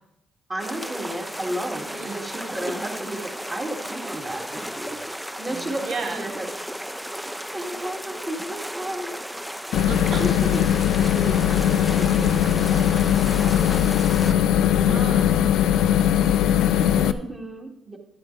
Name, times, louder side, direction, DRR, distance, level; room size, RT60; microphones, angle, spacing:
voice 1, 0.5-3.2 3.5-5.0 5.4-6.5 7.5-9.2 10.2-10.6 11.1-13.4 14.6-15.2 16.9-18.0, right 1 dB, 30° right, -1 dB, 2.6 m, -33 dB
sound 1, 0.6-14.3, equal, 5° right, 0.5 m, -34 dB
voice 2, 1.9-2.2 5.4-6.3 9.9-10.2 14.6-15.3 15.8-17.2, right 4 dB, 65° right, 1 dB, 2.1 m, -36 dB
sound 2, 9.7-17.1, left 10 dB, 85° left, 0.5 m, -20 dB
12.0 x 9.6 x 3.4 m, 0.79 s
cardioid pair, 90°, 0 cm